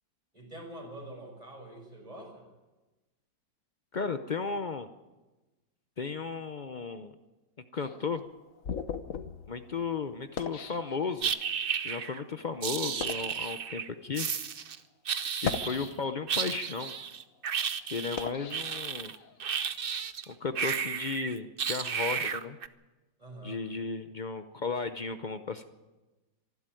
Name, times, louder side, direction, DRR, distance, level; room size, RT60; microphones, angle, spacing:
voice 1, 0.3-2.5 23.2-23.6, right 1 dB, 20° right, 1 dB, 6.0 m, -45 dB
voice 2, 3.9-4.9 6.0-7.1 7.7-8.2 9.5-11.3 11.8-14.3 15.4-16.9 17.8-19.1 20.3-22.6 23.4-25.7, left 4 dB, 90° left, 9 dB, 0.4 m, -34 dB
sound 1, 7.8-11.5 12.2-12.3 12.8-13.4 14.2-14.3 15.3-16.4 16.9-19.4, left 7 dB, 50° left, 1.3 m, -39 dB
sound 2, 11.2-12.2 12.6-13.9 14.1-14.8 15.1-15.9 16.3-20.2 20.5-22.7, right 7 dB, 55° right, 0.6 m, -33 dB
25.0 x 12.0 x 9.1 m, 1.1 s
omnidirectional pair, 2.0 m